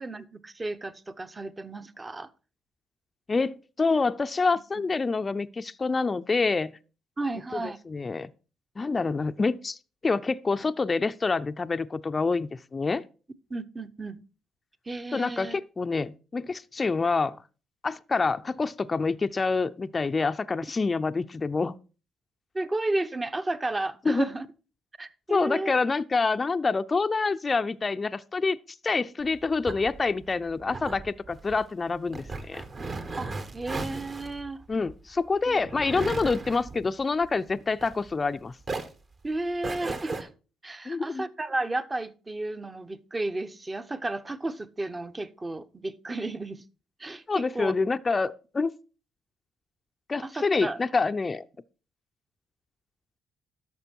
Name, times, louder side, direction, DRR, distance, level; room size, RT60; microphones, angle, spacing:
voice 1, 0.0-2.3 7.2-7.8 13.5-14.2 14.9-15.6 22.5-24.5 25.0-25.7 33.2-33.3 33.5-34.6 35.5-35.6 39.2-40.3 40.6-46.6 47.0-47.7 50.2-50.8, right 2 dB, 25° right, 1.0 m, -33 dB
voice 2, 3.3-6.8 7.5-8.3 8.8-13.0 15.1-17.4 17.8-21.7 24.0-24.3 25.3-28.6 28.8-32.6 34.7-38.5 40.9-41.2 47.3-48.7 50.1-51.5, left 4 dB, 30° left, 0.5 m, -27 dB
sound 1, 29.2-38.3 38.6-40.2, right 3 dB, 45° right, 1.8 m, -37 dB
12.0 x 6.7 x 4.5 m
supercardioid pair, 60°, 0 cm